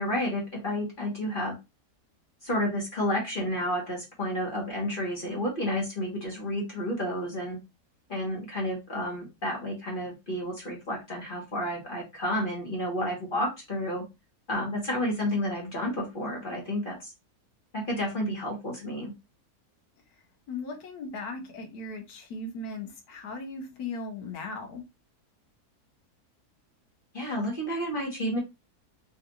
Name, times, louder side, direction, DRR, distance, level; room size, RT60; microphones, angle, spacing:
voice 1, 0.0-1.6 2.4-7.6 8.1-14.0 14.5-17.1 17.7-19.1 27.1-28.4, equal, 35° left, -2 dB, 1.1 m, -31 dB
voice 2, 20.5-24.8, left 3 dB, 75° left, 4 dB, 1.4 m, -37 dB
3.7 x 2.4 x 2.8 m, 0.24 s
omnidirectional pair, 1.7 m